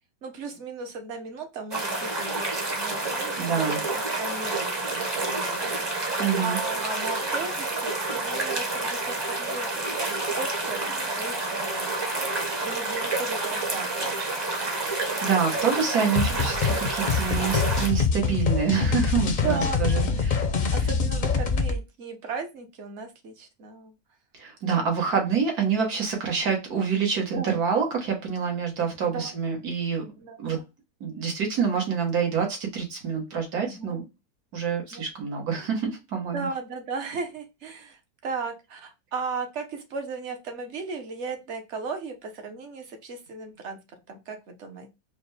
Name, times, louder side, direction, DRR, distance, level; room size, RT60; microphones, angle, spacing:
voice 1, 0.2-14.3 19.3-20.2 20.7-23.9 27.3-27.6 29.1-29.3 30.2-30.6 33.6-34.1 34.9-35.0 36.3-43.8 44.1-44.9, right 4 dB, 55° right, 5 dB, 1.1 m, -36 dB
sound 1, 1.7-17.9, right 2 dB, 25° right, 0.6 m, -29 dB
voice 2, 3.4-3.8 6.2-6.6 14.8-20.5 24.3-30.1 30.4-30.6 31.0-34.0 34.5-36.5, right 6 dB, 80° right, 1 dB, 1.8 m, -27 dB
sound 2, 16.1-21.8, left 5 dB, 55° left, 0.5 m, -25 dB
4.9 x 2.2 x 3.3 m, 0.25 s
omnidirectional pair, 1.6 m